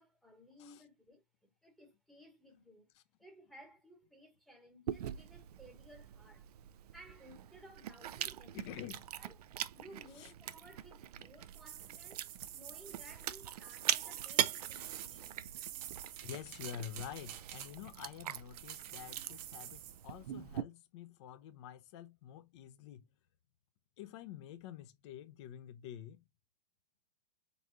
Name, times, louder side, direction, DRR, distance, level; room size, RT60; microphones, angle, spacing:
voice 1, 0.0-2.9 3.2-6.5 6.9-8.9 9.2-9.4 9.7-12.3 12.5-15.5, equal, ahead, 1.1 m, -58 dB
Chewing mastication, 4.9-20.6, right 11 dB, 70° right, 0.5 m, -42 dB
voice 2, 8.5-9.0 10.1-10.3 16.2-23.1 24.0-26.2, left 10 dB, 45° left, 0.8 m, -48 dB
sound 1, 11.5-18.0 18.5-20.1, right 11 dB, 30° right, 0.8 m, -48 dB
4.7 x 4.0 x 2.5 m
hypercardioid pair, 150°, 21 cm